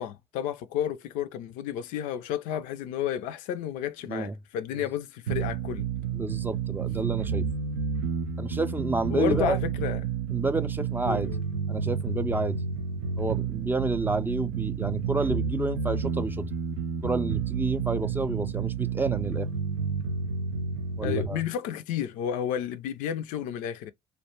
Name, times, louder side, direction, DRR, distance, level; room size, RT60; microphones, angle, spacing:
voice 1, 0.0-5.9 9.1-10.0 11.1-11.4 21.0-23.9, left 10 dB, 70° left, 0.4 m, -31 dB
sound 1, 5.3-21.3, right 6 dB, 80° right, 0.4 m, -30 dB
voice 2, 6.1-7.4 8.4-9.6 10.3-11.3 11.7-12.6 13.2-16.5 17.0-19.5 21.0-21.4, right 3 dB, 15° right, 0.4 m, -29 dB
2.2 x 2.1 x 2.9 m
hypercardioid pair, 55°, 14 cm